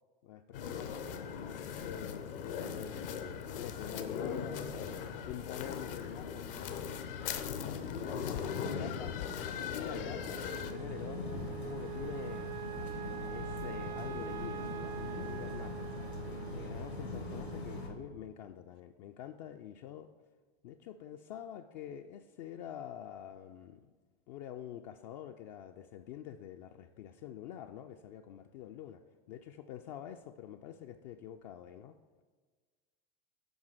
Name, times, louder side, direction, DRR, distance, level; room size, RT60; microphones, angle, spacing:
voice 1, 0.2-3.3 3.6-7.2 7.5-12.5 13.3-15.9 16.2-20.1 20.6-23.9 24.3-29.0 29.3-32.0, left 10 dB, 45° left, 6 dB, 0.4 m, -47 dB
sound 1, 0.5-10.7, left 7 dB, 60° left, 0.8 m, -39 dB
Wind instrument woodwind instrument, 9.8-18.3, right 14 dB, 45° right, 0.4 m, -45 dB
sound 2, 10.6-17.9, left 2 dB, 85° left, 1.9 m, -41 dB
7.8 x 5.2 x 4.6 m, 1.4 s
figure-of-eight pair, 85°, 31 cm